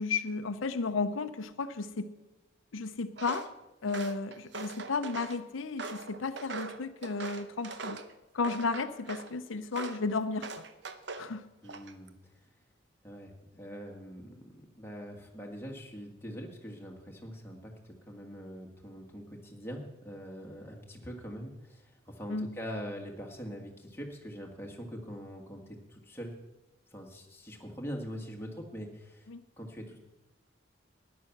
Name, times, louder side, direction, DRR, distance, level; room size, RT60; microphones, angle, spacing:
voice 1, 0.0-2.1 2.7-3.5 3.8-8.0 8.3-10.6 11.2-11.5 22.3-22.5 29.3-29.4, left 4 dB, 85° left, 10 dB, 0.7 m, -33 dB
Walk footsteps, 3.2-3.5 3.9-5.4 5.8-8.1 8.4-9.3 9.7-10.0 10.4-11.3 11.7-12.1, right 4 dB, 60° right, 0.8 m, -41 dB
voice 2, 11.6-12.1 13.0-26.3 26.9-29.3 29.6-30.0, equal, 10° left, 0 dB, 1.7 m, -43 dB
12.5 x 10.0 x 5.9 m, 1.0 s
head